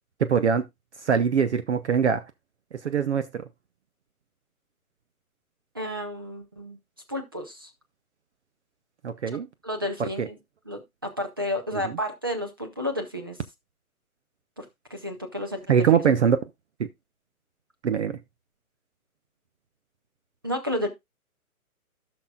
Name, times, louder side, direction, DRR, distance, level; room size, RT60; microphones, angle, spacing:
voice 1, 0.2-0.7 1.0-2.3 2.8-3.4 9.0-9.5 10.0-10.3 11.8-12.0 15.7-16.4 16.8-16.9 17.8-18.2, right 7 dB, 50° right, 0.7 m, -23 dB
voice 2, 5.7-6.8 7.1-7.7 9.6-10.4 10.7-13.4 14.6-14.7 14.9-16.1 20.4-20.9, left 1 dB, 15° right, 0.5 m, -31 dB
16.0 x 6.1 x 2.2 m
hypercardioid pair, 165°, 44 cm